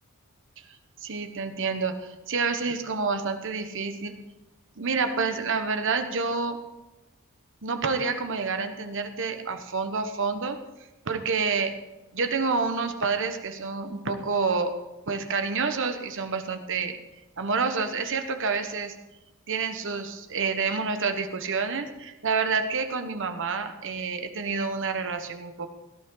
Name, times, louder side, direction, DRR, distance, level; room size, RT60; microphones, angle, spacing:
voice 1, 1.0-4.2 4.8-6.6 7.6-10.6 11.1-11.8 12.1-14.8 15.1-17.0 17.4-18.9 19.5-25.7, right 4 dB, 60° right, 7 dB, 1.2 m, -28 dB
17.5 x 11.5 x 3.9 m, 1.0 s
head